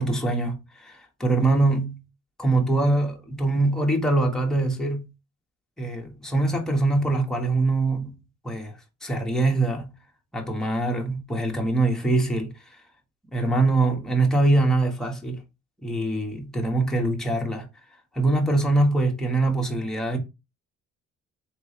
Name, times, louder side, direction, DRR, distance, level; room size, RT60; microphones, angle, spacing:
voice 1, 0.0-2.0 2.4-5.1 5.8-8.2 8.4-8.7 9.0-9.9 10.3-12.5 13.3-15.4 15.8-17.7 18.1-20.2, right 2 dB, ahead, 1.4 m, -23 dB
4.2 x 3.4 x 3.2 m
cardioid pair, 90°, 30 cm